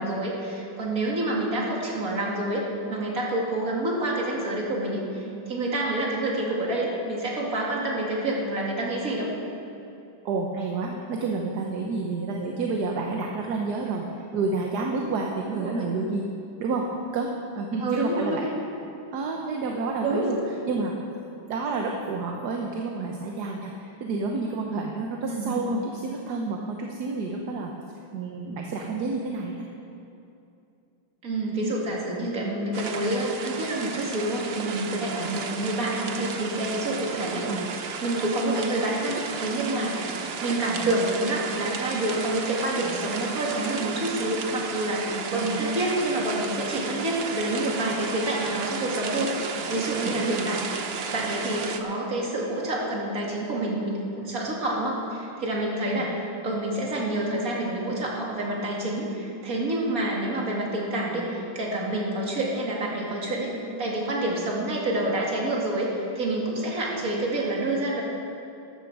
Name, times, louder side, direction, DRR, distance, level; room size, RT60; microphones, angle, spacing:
voice 1, 0.0-9.3 15.5-15.9 17.8-18.5 20.0-20.3 25.2-25.6 31.2-37.4 38.0-40.1 40.4-50.6 51.1-56.1 56.4-63.5 63.8-68.0, right 1 dB, 45° right, -3 dB, 2.7 m, -28 dB
voice 2, 10.2-16.2 16.6-16.9 17.1-17.3 17.6-18.5 19.1-20.4 20.7-20.9 21.5-27.7 28.1-29.7 35.1-35.3 37.5-37.7 45.3-45.6 50.0-50.3 55.9-56.1 67.1-67.2, right 3 dB, 60° right, 1 dB, 1.4 m, -29 dB
sound 1, 32.7-51.8, right 5 dB, 80° right, 0.5 m, -33 dB
14.0 x 12.5 x 4.8 m, 2.7 s
omnidirectional pair, 2.2 m